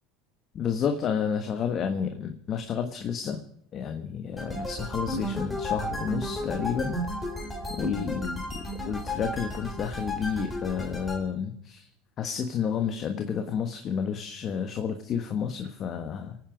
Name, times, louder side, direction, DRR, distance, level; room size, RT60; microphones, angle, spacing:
voice 1, 0.5-3.4 3.7-7.0 7.8-8.4 8.8-11.8 12.2-16.4, left 7 dB, 45° left, 6 dB, 1.4 m, -30 dB
sound 1, 4.4-11.2, left 1 dB, 10° left, 4.3 m, -33 dB
25.5 x 9.4 x 5.2 m, 0.67 s
supercardioid pair, 100°, 0 cm